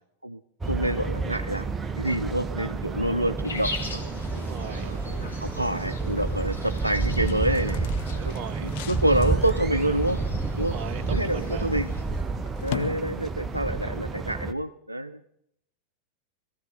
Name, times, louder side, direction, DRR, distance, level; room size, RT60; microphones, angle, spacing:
sound 1, 0.6-14.5, right 3 dB, 20° right, 0.8 m, -30 dB
voice 1, 0.7-1.7 2.0-4.0 4.6-5.0 5.4-7.9 8.2-8.3 8.6-10.2 10.6-10.8 11.1-11.9 12.6-15.2, right 1 dB, 85° right, 9 dB, 0.5 m, -27 dB
sound 2, 3.3-13.7, left 14 dB, 50° left, 0.9 m, -43 dB
sound 3, 3.4-12.0, left 2 dB, 85° left, 2.7 m, -41 dB
voice 2, 4.4-4.9 8.2-8.7 10.6-11.7 13.8-14.2, right 7 dB, 40° right, 8 dB, 1.2 m, -39 dB
22.5 x 14.5 x 3.9 m, 0.73 s
figure-of-eight pair, 90°, 0 cm